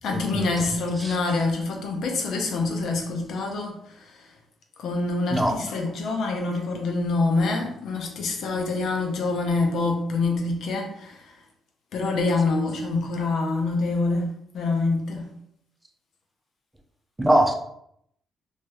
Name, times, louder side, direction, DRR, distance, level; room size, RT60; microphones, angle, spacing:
voice 1, 0.0-4.2 4.8-11.3 11.9-15.3, left 3 dB, 70° left, 0.6 m, -26 dB
voice 2, 17.2-17.5, right 1 dB, 15° right, 0.5 m, -21 dB
2.6 x 2.4 x 3.2 m
cardioid pair, 90°, 0 cm